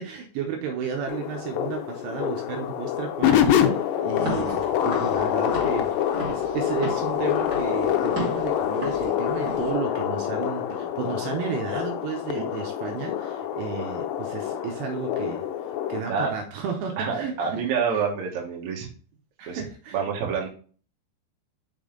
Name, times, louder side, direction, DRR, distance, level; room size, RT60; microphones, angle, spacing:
voice 1, 0.0-15.4 15.9-18.0 19.4-20.0, right 7 dB, 75° right, 3 dB, 2.7 m, -33 dB
sound 1, 1.1-16.0, left 10 dB, 80° left, 2.7 m, -26 dB
Walk footsteps / Siren, 4.1-9.7, right 1 dB, 30° right, 2.2 m, -36 dB
voice 2, 17.0-18.9 19.5-19.6 19.9-20.5, right 6 dB, 60° right, 0 dB, 2.1 m, -27 dB
6.2 x 5.4 x 3.7 m, 0.41 s
omnidirectional pair, 5.2 m